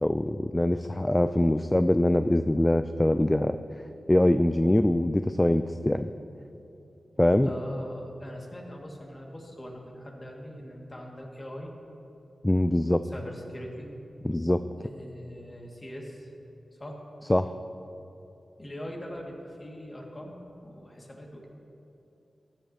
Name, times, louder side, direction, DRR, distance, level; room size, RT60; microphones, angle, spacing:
voice 1, 0.0-3.6 4.1-6.1 7.2-7.5 12.4-13.0 14.2-14.6 17.3-17.5, left 1 dB, 20° left, 10 dB, 0.3 m, -23 dB
voice 2, 1.3-1.7 7.4-11.7 13.0-13.9 14.8-16.3 16.8-17.0 18.6-21.5, equal, 35° left, 0 dB, 2.0 m, -41 dB
14.5 x 10.5 x 2.8 m, 3.0 s
cardioid pair, 45°, 0 cm